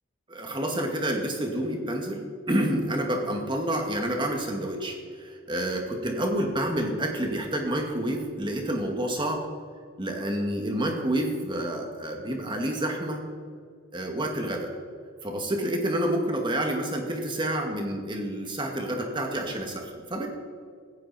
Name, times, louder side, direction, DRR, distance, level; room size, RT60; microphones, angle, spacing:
voice 1, 0.3-9.4 10.0-13.2 13.9-14.7 15.2-20.3, right 1 dB, 20° right, 2 dB, 2.2 m, -29 dB
16.0 x 15.5 x 4.4 m, 2.1 s
head